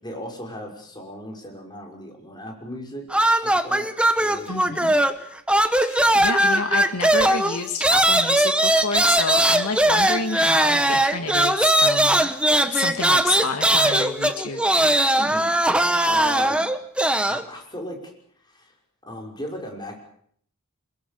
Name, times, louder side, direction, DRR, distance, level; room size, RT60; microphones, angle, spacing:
voice 1, 0.0-3.1 3.4-4.6 15.2-15.5 16.1-16.6 17.2-18.0 18.4-18.7 19.0-20.0, equal, 20° left, 2 dB, 6.0 m, -36 dB
sound 1, 3.1-5.2 5.5-17.4, right 1 dB, 5° right, 1.2 m, -20 dB
voice 2, 4.5-4.9 5.7-12.3 12.7-14.6, left 4 dB, 85° left, 5 dB, 1.9 m, -29 dB
24.5 x 22.0 x 7.0 m, 0.64 s
head